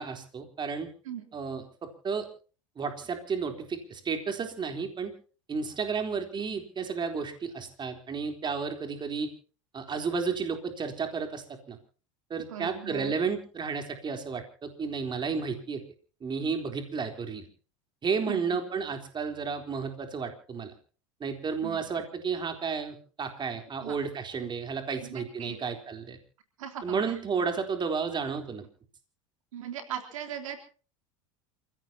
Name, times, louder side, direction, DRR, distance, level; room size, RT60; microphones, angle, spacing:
voice 1, 0.0-0.9 1.3-2.3 2.8-5.1 5.5-9.3 9.7-11.8 12.3-15.8 16.2-17.5 18.0-20.7 21.2-26.2 26.8-28.6, right 5 dB, 25° right, 5 dB, 3.9 m, -32 dB
voice 2, 12.5-13.1 18.2-18.4 21.6-21.8 23.8-24.0 25.0-25.6 26.6-27.2 29.5-30.6, right 9 dB, 90° right, 4 dB, 3.7 m, -38 dB
28.5 x 16.5 x 2.9 m, 0.39 s
supercardioid pair, 105°, 17 cm